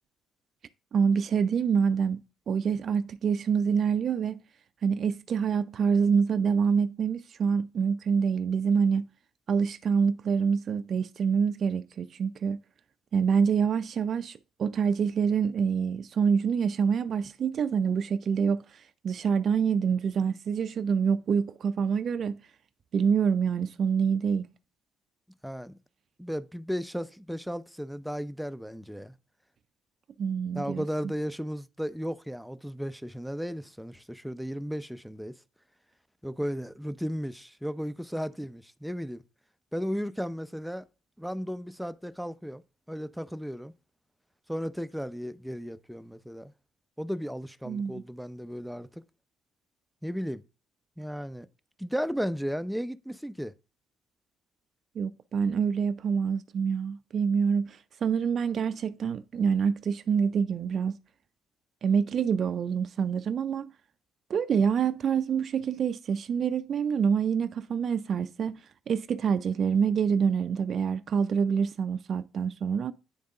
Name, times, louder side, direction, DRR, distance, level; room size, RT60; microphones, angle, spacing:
voice 1, 0.9-4.4 4.8-9.0 9.5-12.6 13.1-22.4 22.9-24.5 30.2-30.8 47.7-48.0 55.0-60.9 61.8-63.7 64.3-68.6 68.9-72.9, right 6 dB, 55° right, 0.4 m, -26 dB
voice 2, 25.4-25.8 26.2-29.1 30.5-35.4 36.2-39.2 39.7-40.8 41.2-42.6 42.9-43.7 44.5-46.5 47.0-48.9 50.0-50.4 51.0-51.5 51.8-53.5, equal, ahead, 0.5 m, -34 dB
9.5 x 3.5 x 3.8 m
supercardioid pair, 60°, 0 cm